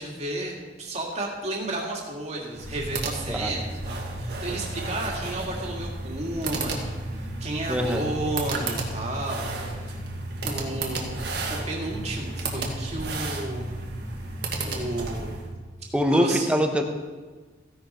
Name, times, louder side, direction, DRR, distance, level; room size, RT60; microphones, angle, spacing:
voice 1, 0.0-10.0 10.4-11.1 11.5-13.7 14.6-15.4 16.1-16.5, right 2 dB, 35° right, -1 dB, 2.4 m, -32 dB
sound 1, 2.5-15.5, right 2 dB, 55° right, 1.9 m, -32 dB
voice 2, 7.7-8.1 15.9-16.8, equal, 5° right, 4 dB, 1.0 m, -23 dB
15.0 x 10.5 x 4.4 m, 1.4 s
head